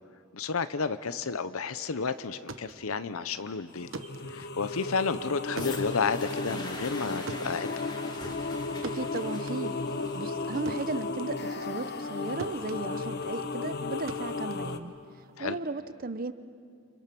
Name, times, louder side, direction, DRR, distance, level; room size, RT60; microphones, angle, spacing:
voice 1, 0.3-3.9 4.3-7.7 15.4-15.6, left 5 dB, 85° left, 12 dB, 0.8 m, -31 dB
sound 1, 2.2-12.1 12.4-15.4, right 3 dB, 65° right, 1.1 m, -44 dB
sound 2, 3.7-14.8, left 3 dB, 50° left, 1.0 m, -35 dB
sound 3, 5.5-13.5 14.3-14.4, left 2 dB, 20° left, 2.4 m, -44 dB
voice 2, 8.8-9.8 10.1-14.9 15.4-16.3, right 3 dB, 40° right, 13 dB, 0.8 m, -35 dB
28.5 x 28.5 x 6.1 m, 2.3 s
head